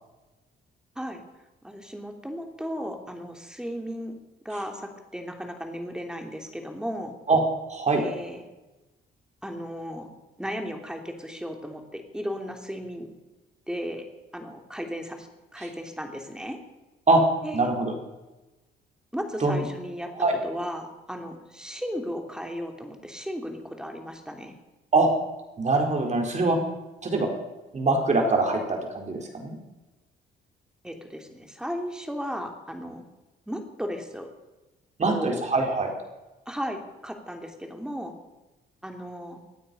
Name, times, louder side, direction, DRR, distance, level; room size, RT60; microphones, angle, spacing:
voice 1, 1.6-4.1 4.4-7.1 7.9-8.4 9.4-10.1 10.4-13.1 13.7-14.0 14.3-15.3 15.5-16.6 17.4-17.7 19.1-20.1 20.4-24.5 30.8-33.0 33.5-34.3 35.1-35.5 36.5-38.1 38.8-39.4, equal, 5° right, 3 dB, 3.1 m, -35 dB
voice 2, 7.7-8.0 15.6-15.7 17.1-17.2 17.5-17.9 19.4-19.6 20.1-20.4 24.9-25.1 25.6-26.6 27.0-27.3 27.7-29.6 35.0-35.9, right 3 dB, 35° right, 1 dB, 4.5 m, -23 dB
25.0 x 9.2 x 5.5 m, 1.1 s
cardioid pair, 90°, 20 cm